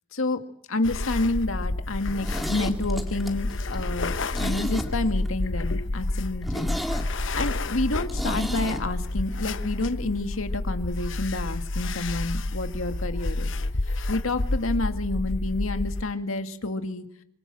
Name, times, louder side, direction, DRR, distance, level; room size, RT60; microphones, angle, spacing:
voice 1, 0.7-4.2 4.4-6.7 7.1-13.5 14.1-17.0, left 2 dB, 90° left, 7 dB, 2.0 m, -29 dB
sound 1, 0.8-16.0, left 2 dB, 70° left, 1.0 m, -29 dB
Zipper (clothing), 2.1-5.3 5.6-5.7 6.0-6.1 6.4-8.8 9.1-9.2, equal, ahead, 2.0 m, -33 dB
25.0 x 24.5 x 7.6 m, 0.78 s
head